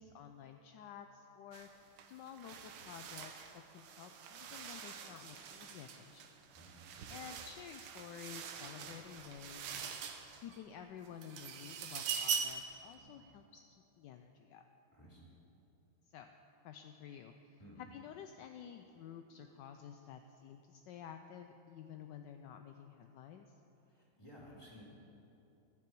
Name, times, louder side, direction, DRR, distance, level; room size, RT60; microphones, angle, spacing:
voice 1, 0.0-6.3 7.1-10.0 10.4-14.7 16.0-16.3 16.6-23.6, left 8 dB, 75° left, 6 dB, 1.1 m, -52 dB
sound 1, 1.5-1.7 2.0-10.6 11.0-12.7, right 6 dB, 85° right, 1.8 m, -43 dB
voice 2, 12.9-13.3 14.9-15.3 17.6-17.8 23.9-24.8, equal, 15° left, -4 dB, 2.9 m, -56 dB
15.5 x 11.5 x 4.6 m, 2.9 s
omnidirectional pair, 2.2 m